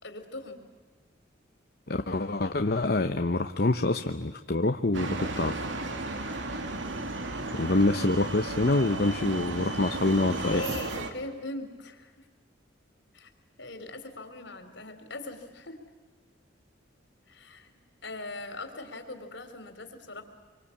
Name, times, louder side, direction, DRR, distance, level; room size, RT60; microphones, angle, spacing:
voice 1, 0.0-0.6 7.6-8.0 10.2-12.2 13.1-13.3 13.6-15.8 17.3-17.8 18.0-20.2, left 2 dB, 70° left, 7 dB, 3.7 m, -40 dB
voice 2, 1.9-5.6 7.5-10.6, left 2 dB, 55° left, 7 dB, 0.9 m, -26 dB
sound 1, 4.9-11.1, right 2 dB, 80° right, 2.5 m, -34 dB
26.5 x 24.5 x 8.6 m, 1.4 s
head